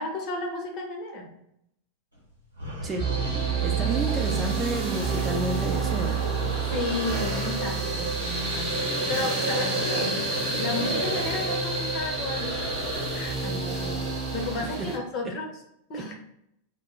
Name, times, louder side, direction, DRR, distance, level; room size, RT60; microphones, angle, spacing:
voice 1, 0.0-1.3 3.8-3.9 4.3-4.5 6.7-10.2 10.6-12.7 13.1-15.5 15.9-16.2, left 2 dB, 40° left, 2 dB, 0.6 m, -33 dB
sound 1, 2.2-2.3 2.6-13.4, equal, 85° right, 0.9 m, -35 dB
sound 2, 3.0-15.0, right 4 dB, 35° right, 0.9 m, -29 dB
voice 2, 3.6-6.2 14.8-14.9 15.9-16.0, right 2 dB, 20° right, 2 dB, 0.4 m, -30 dB
2.1 x 2.0 x 3.7 m, 0.77 s
figure-of-eight pair, 90°, 0 cm